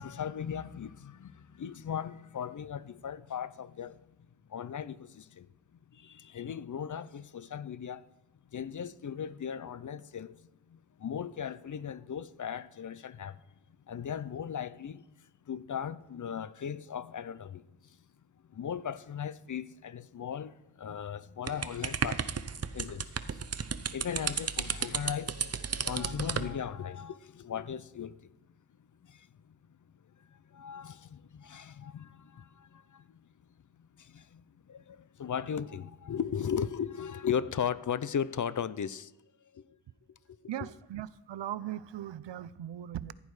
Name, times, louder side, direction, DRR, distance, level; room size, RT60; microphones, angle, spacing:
voice 1, 0.0-4.0 4.5-5.5 5.9-8.0 8.5-10.4 10.7-13.4 13.9-18.0 18.5-22.3 22.7-23.4 23.9-28.3 29.0-29.6 30.3-33.2 34.0-39.1 39.5-39.7 40.6-40.7, left 8 dB, 45° left, 0.5 m, -37 dB
sound 1, 21.5-26.5, right 6 dB, 35° right, 0.7 m, -33 dB
voice 2, 40.5-43.1, right 11 dB, 85° right, 0.6 m, -39 dB
15.5 x 11.0 x 4.8 m
wide cardioid pair, 145°, 42 cm